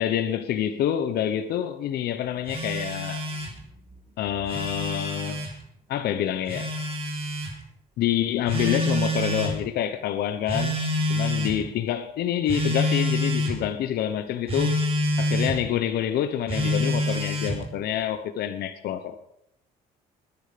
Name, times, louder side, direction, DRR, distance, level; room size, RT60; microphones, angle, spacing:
voice 1, 0.0-3.2 4.2-5.4 5.9-6.7 8.0-10.8 11.1-14.7 15.2-19.2, left 10 dB, 70° left, 1.0 m, -27 dB
Telephone, 2.5-3.6 4.3-5.5 6.5-7.5 8.5-9.6 10.5-11.6 12.5-13.6 14.5-15.6 16.5-17.6, left 1 dB, 35° right, 3.8 m, -26 dB
20.5 x 10.0 x 5.2 m
cardioid pair, 110°, 17 cm